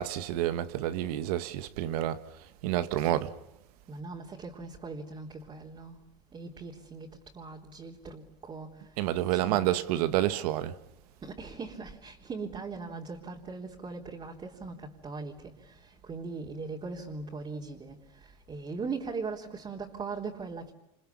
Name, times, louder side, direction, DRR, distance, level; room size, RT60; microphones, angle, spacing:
voice 1, 0.0-2.2 2.6-3.3 9.0-10.7, right 13 dB, 85° right, 1.8 m, -29 dB
voice 2, 3.9-6.0 6.3-7.1 7.3-8.7 9.3-9.8 11.2-15.5 16.1-18.0 18.5-20.7, right 4 dB, 25° right, 3.7 m, -39 dB
29.0 x 28.5 x 7.1 m
supercardioid pair, 125°, 19 cm